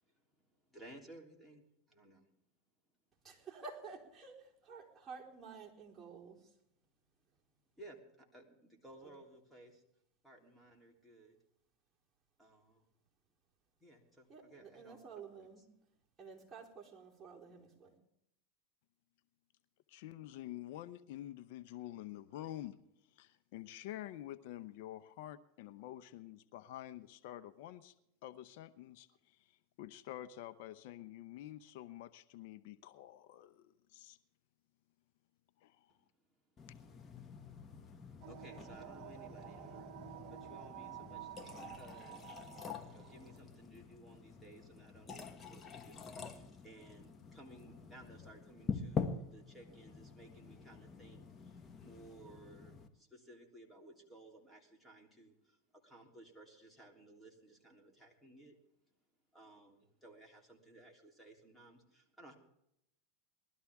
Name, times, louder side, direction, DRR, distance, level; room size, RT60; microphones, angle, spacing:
voice 1, 0.7-2.2 7.8-9.8 10.2-11.4 12.4-12.8 13.8-15.0 38.3-40.0 40.3-42.4 42.9-58.6 59.3-62.3, right 1 dB, 5° left, 1 dB, 3.3 m, -58 dB
voice 2, 3.2-6.5 9.0-9.1 14.3-15.8 16.2-17.9, right 5 dB, 20° right, -3 dB, 4.2 m, -52 dB
voice 3, 19.9-22.8 23.1-27.9 28.2-34.2 35.6-35.9, left 13 dB, 65° left, 12 dB, 0.7 m, -48 dB
glasses pouring, 36.6-52.9, left 5 dB, 25° left, 1.3 m, -46 dB
sound 1, 38.2-43.4, right 12 dB, 50° right, 1.2 m, -51 dB
20.5 x 13.0 x 3.6 m, 0.78 s
hypercardioid pair, 110°, 0 cm